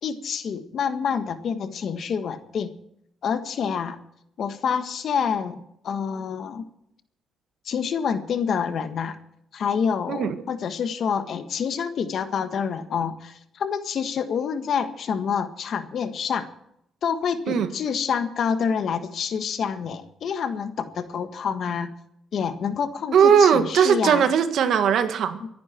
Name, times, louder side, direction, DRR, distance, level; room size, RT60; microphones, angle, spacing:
voice 1, 0.0-2.7 3.2-4.0 4.4-6.6 7.6-9.2 9.5-16.5 17.0-21.9 22.3-24.2 25.4-25.5, left 6 dB, 60° left, 9 dB, 1.6 m, -27 dB
voice 2, 23.1-25.4, right 7 dB, 70° right, 8 dB, 1.7 m, -19 dB
24.0 x 10.5 x 4.5 m, 0.74 s
cardioid pair, 90°, 0 cm